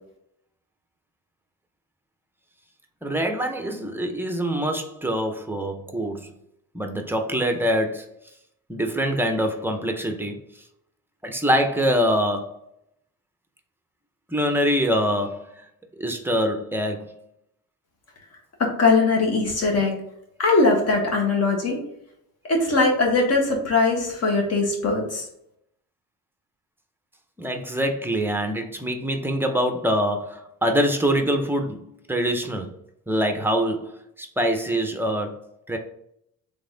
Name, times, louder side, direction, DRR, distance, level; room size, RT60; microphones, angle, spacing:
voice 1, 3.0-6.3 6.7-8.1 8.7-10.4 11.2-12.5 14.3-15.5 16.0-17.2 27.4-32.7 33.1-35.4 35.7-35.8, equal, 5° right, 5 dB, 0.6 m, -24 dB
voice 2, 18.6-19.9 20.4-21.8 22.5-25.2, left 3 dB, 45° left, 0 dB, 1.4 m, -20 dB
3.9 x 3.5 x 3.8 m, 0.75 s
cardioid pair, 145°, 35 cm